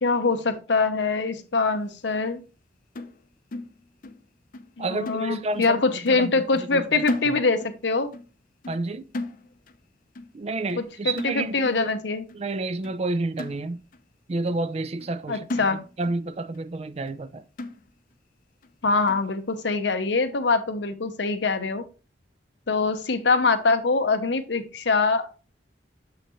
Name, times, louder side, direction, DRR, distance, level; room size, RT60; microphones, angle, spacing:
voice 1, 0.0-2.4 4.8-8.1 10.8-12.2 15.3-15.8 18.8-21.8 22.7-25.3, left 4 dB, 80° left, 0.9 m, -24 dB
sound 1, 3.0-4.3 4.5-4.8 5.1-5.8 6.1-6.3 6.6-7.8 8.1-8.3 8.6-9.8 10.2-10.4 10.7-10.9 11.2-11.8 12.3-12.4 12.8-13.0 13.4-14.1 14.5-14.6 15.0-15.2 15.5-16.2 16.5-16.6 17.1-17.2 17.6-18.1 18.6-18.7 19.1-19.3, left 2 dB, 50° left, 0.6 m, -36 dB
voice 2, 4.8-7.4 8.7-9.1 10.3-11.9 12.3-13.8 14.3-15.7 16.0-17.4, right 2 dB, 35° right, 0.4 m, -30 dB
7.0 x 5.8 x 3.0 m
head